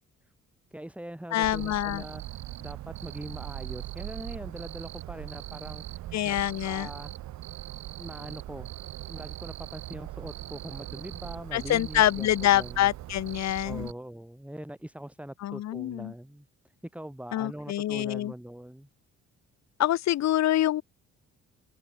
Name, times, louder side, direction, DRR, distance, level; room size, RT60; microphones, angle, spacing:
voice 1, 0.7-7.1 8.0-8.7 9.1-12.9 13.6-16.5 16.9-18.9, right 1 dB, 5° right, 6.0 m, -42 dB
voice 2, 1.3-2.0 6.1-6.9 11.5-13.9 15.4-16.1 17.3-18.3 19.8-20.8, left 13 dB, 60° left, 0.8 m, -26 dB
Cricket, 1.4-13.9, right 15 dB, 70° right, 0.6 m, -40 dB
open air
cardioid pair, 90°, 30 cm